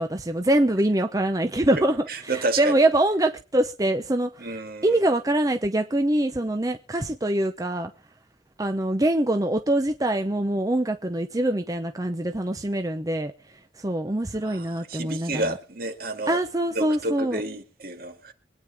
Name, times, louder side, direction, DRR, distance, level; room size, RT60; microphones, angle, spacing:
voice 1, 0.0-7.9 8.6-15.5 16.3-17.4, right 1 dB, 20° right, 0.7 m, -24 dB
voice 2, 2.1-2.8 4.4-5.0 14.4-16.4 16.7-18.3, right 2 dB, 55° right, 2.2 m, -30 dB
24.0 x 9.5 x 3.5 m
head